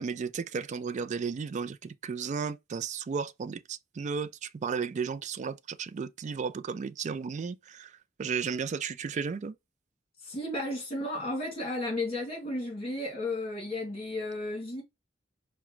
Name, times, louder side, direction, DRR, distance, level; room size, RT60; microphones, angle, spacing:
voice 1, 0.0-7.9 8.2-9.6, right 5 dB, 40° right, 0.3 m, -34 dB
voice 2, 10.2-14.8, left 1 dB, 35° left, 2.4 m, -33 dB
4.8 x 2.2 x 3.0 m
head